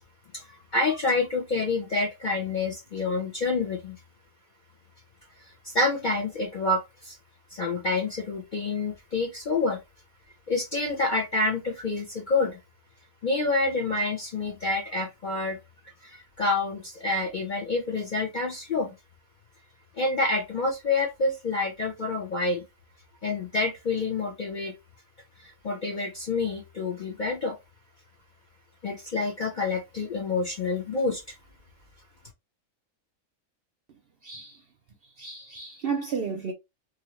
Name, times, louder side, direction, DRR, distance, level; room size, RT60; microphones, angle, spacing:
voice 1, 0.3-4.0 5.4-7.2 7.5-9.8 10.5-12.6 13.2-15.6 16.0-18.9 20.0-22.6 23.2-24.7 25.4-27.6 28.8-31.3, left 3 dB, 50° left, 0.5 m, -28 dB
voice 2, 34.2-34.6 35.2-36.5, right 6 dB, 60° right, 0.6 m, -32 dB
2.8 x 2.6 x 3.0 m
omnidirectional pair, 1.5 m